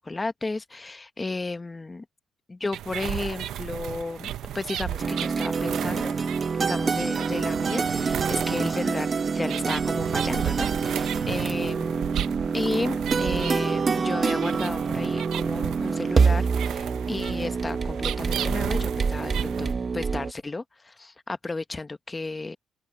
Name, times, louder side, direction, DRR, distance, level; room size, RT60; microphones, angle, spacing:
voice 1, 0.0-2.0 2.5-4.3 4.5-6.1 6.6-12.0 12.5-22.6, left 3 dB, 15° left, 0.9 m, -33 dB
sound 1, 2.7-19.7, right 11 dB, 70° right, 0.6 m, -34 dB
sound 2, 5.0-20.3, right 5 dB, 30° right, 0.9 m, -26 dB
open air
cardioid pair, 145°, 0 cm